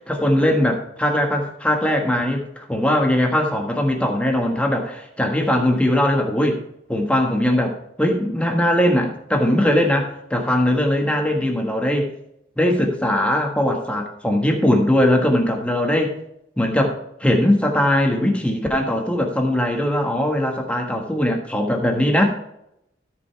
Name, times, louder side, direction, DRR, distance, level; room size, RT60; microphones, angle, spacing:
voice 1, 0.1-6.6 6.9-12.1 12.6-16.1 16.6-16.9 17.2-22.2, left 1 dB, 5° left, 2 dB, 1.4 m, -20 dB
13.5 x 5.3 x 4.6 m, 0.79 s
head